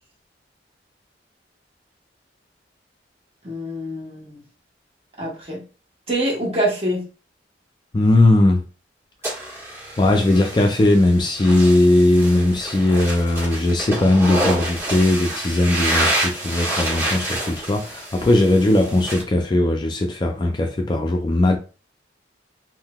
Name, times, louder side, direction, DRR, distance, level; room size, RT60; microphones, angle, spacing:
voice 1, 3.4-4.4 5.2-5.6 6.1-7.0, right 1 dB, 35° right, 1.3 m, -25 dB
voice 2, 7.9-8.6 10.0-21.6, left 1 dB, 25° left, 0.3 m, -18 dB
sound 1, 9.2-19.2, right 1 dB, 15° right, 1.5 m, -27 dB
3.6 x 2.7 x 2.3 m
head